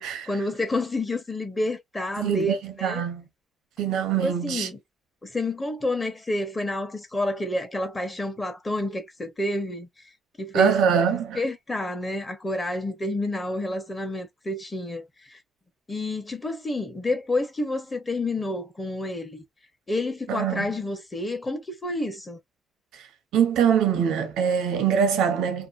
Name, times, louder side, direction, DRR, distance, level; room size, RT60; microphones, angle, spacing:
voice 1, 0.0-3.0 4.2-4.8 5.2-9.9 10.4-10.8 11.3-15.4 15.9-19.4 19.9-22.4, left 2 dB, 20° left, 1.1 m, -29 dB
voice 2, 2.2-3.2 3.8-4.7 10.5-11.4 20.3-20.7 23.3-25.7, right 7 dB, 90° right, 0.8 m, -23 dB
2.9 x 2.2 x 2.5 m
cardioid pair, 90°, 0 cm